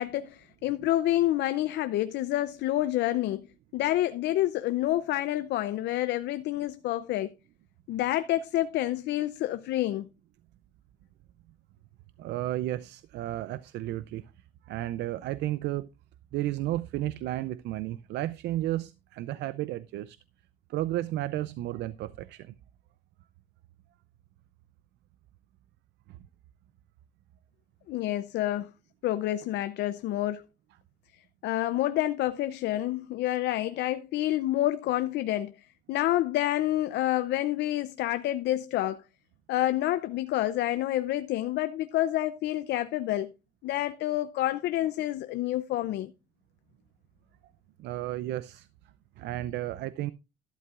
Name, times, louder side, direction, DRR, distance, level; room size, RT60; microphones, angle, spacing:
voice 1, 0.0-3.5 3.7-7.3 7.9-10.1 27.9-28.7 29.0-30.4 31.4-35.5 35.9-39.0 39.5-43.3 43.6-46.1, left 14 dB, 75° left, 0.5 m, -28 dB
voice 2, 12.2-14.2 14.7-15.9 16.3-20.2 20.7-22.5 26.1-26.2 47.8-48.7 49.2-50.1, right 14 dB, 75° right, 0.5 m, -33 dB
12.5 x 11.5 x 2.4 m
cardioid pair, 120°, 18 cm